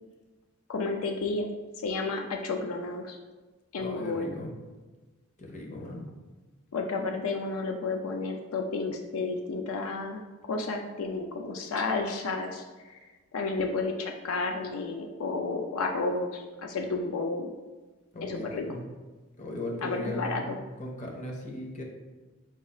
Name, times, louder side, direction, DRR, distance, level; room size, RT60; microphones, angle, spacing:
voice 1, 0.7-1.5 1.8-3.2 3.7-4.3 6.7-13.0 13.3-17.5 18.2-18.7 19.8-20.6, left 3 dB, 80° left, 3 dB, 0.4 m, -31 dB
voice 2, 3.8-4.5 5.4-6.0 18.1-18.8 19.4-21.8, left 1 dB, 35° left, 0 dB, 0.6 m, -37 dB
4.7 x 2.4 x 4.1 m, 1.3 s
head